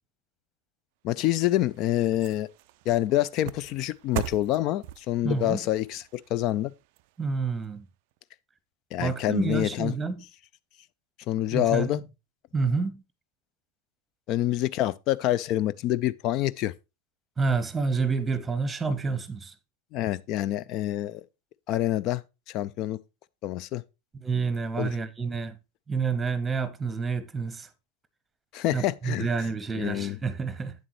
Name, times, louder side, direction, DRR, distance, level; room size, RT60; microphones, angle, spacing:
voice 1, 1.0-2.5 2.9-6.7 8.9-9.9 11.3-12.0 14.3-16.7 19.9-21.2 21.7-22.2 22.5-23.0 23.4-23.8 24.8-24.9 28.5-29.3 29.8-30.2, left 14 dB, 40° left, 0.3 m, -26 dB
sound 1, 1.2-7.7 8.1-8.2, right 15 dB, 45° right, 0.3 m, -41 dB
voice 2, 5.2-5.6 7.2-7.8 9.0-10.2 11.5-12.0 12.5-13.0 17.4-19.5 24.1-25.6 25.9-27.7 28.7-30.7, right 4 dB, 10° right, 0.9 m, -28 dB
8.5 x 7.4 x 3.0 m
figure-of-eight pair, 90°, 0 cm